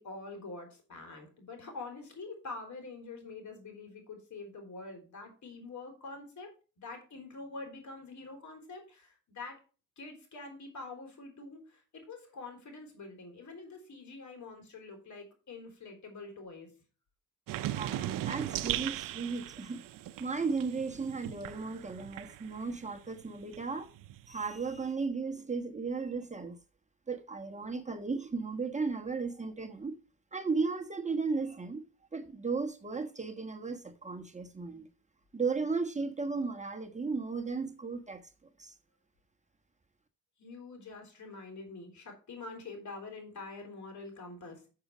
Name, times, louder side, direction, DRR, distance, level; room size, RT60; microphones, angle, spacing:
voice 1, 0.0-6.5 6.8-9.6 10.0-16.7 40.4-44.7, left 3 dB, 60° left, 3.7 m, -46 dB
sound 1, 17.5-22.8 23.1-24.9, right 13 dB, 75° right, 0.6 m, -38 dB
voice 2, 17.7-19.8 20.2-23.9 24.3-26.6 27.1-30.0 30.3-31.8 32.1-34.9 35.3-38.2 38.6-38.7, right 4 dB, 20° right, 1.3 m, -35 dB
6.8 x 6.7 x 5.0 m
cardioid pair, 70°, 33 cm